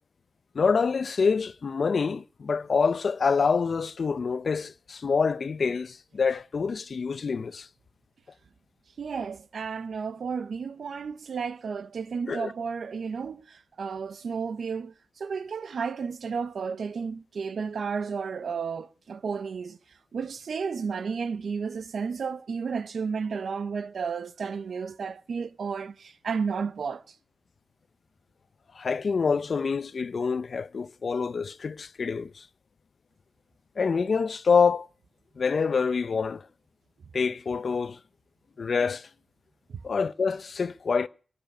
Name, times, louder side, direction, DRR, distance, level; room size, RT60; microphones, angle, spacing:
voice 1, 0.5-7.7 12.3-12.5 28.7-32.5 33.8-34.9 35.4-36.4 37.1-38.0 38.6-39.1 39.8-41.1, left 5 dB, 60° left, 0.6 m, -26 dB
voice 2, 9.0-19.8 20.1-27.0 39.7-39.8, right 5 dB, 75° right, 0.7 m, -32 dB
18.0 x 6.9 x 9.0 m
wide cardioid pair, 125°, 0 cm